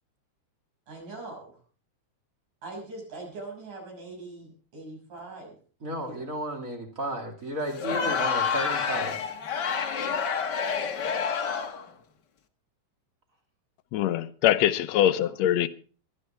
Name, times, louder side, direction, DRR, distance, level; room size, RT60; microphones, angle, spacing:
voice 1, 0.9-1.6 2.6-5.6 6.0-6.3 15.0-15.3, right 2 dB, 70° right, 7.8 m, -42 dB
voice 2, 5.8-9.3, right 1 dB, 25° right, 2.6 m, -33 dB
Crowd, 7.7-11.9, left 6 dB, 55° left, 1.2 m, -28 dB
voice 3, 13.9-15.7, left 12 dB, 70° left, 1.8 m, -23 dB
22.0 x 13.0 x 3.5 m
omnidirectional pair, 3.7 m